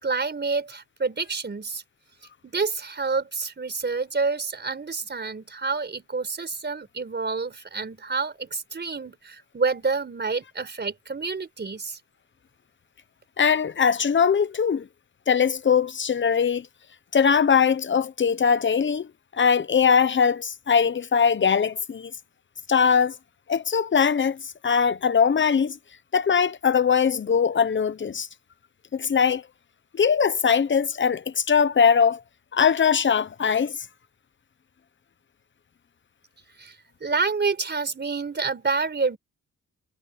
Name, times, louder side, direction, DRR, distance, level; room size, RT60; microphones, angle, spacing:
voice 1, 0.0-1.8 2.4-12.0 36.6-36.7 37.0-39.2, right 4 dB, 35° right, 4.4 m, -28 dB
voice 2, 13.4-14.9 15.3-16.7 17.1-19.1 19.4-22.1 22.7-23.1 23.5-25.8 26.1-28.3 28.9-29.4 29.9-32.2 32.5-33.8, left 6 dB, 40° left, 1.0 m, -21 dB
cardioid pair, 100°, 31 cm